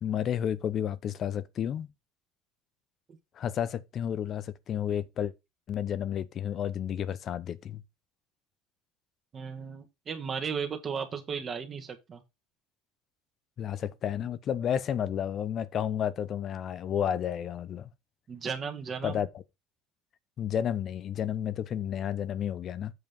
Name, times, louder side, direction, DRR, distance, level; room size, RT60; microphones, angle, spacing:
voice 1, 0.0-1.9 3.4-5.3 5.7-7.8 13.6-17.9 19.0-19.3 20.4-22.9, left 9 dB, 45° left, 0.8 m, -31 dB
voice 2, 9.3-12.2 18.3-19.3, right 6 dB, 35° right, 1.8 m, -35 dB
8.0 x 5.1 x 5.3 m
supercardioid pair, 105°, 0 cm